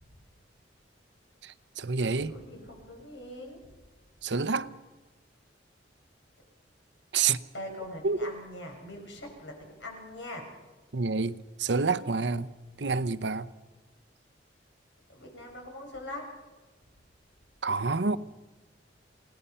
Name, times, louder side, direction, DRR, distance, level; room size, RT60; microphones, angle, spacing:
voice 1, 1.4-2.4 4.2-4.7 7.1-7.4 8.0-8.3 10.9-12.5 12.8-13.5 17.6-18.2, right 4 dB, 65° right, 0.8 m, -28 dB
voice 2, 2.2-3.6 7.5-10.5 15.1-16.3, left 1 dB, 75° left, 5.3 m, -42 dB
28.5 x 18.0 x 5.6 m
head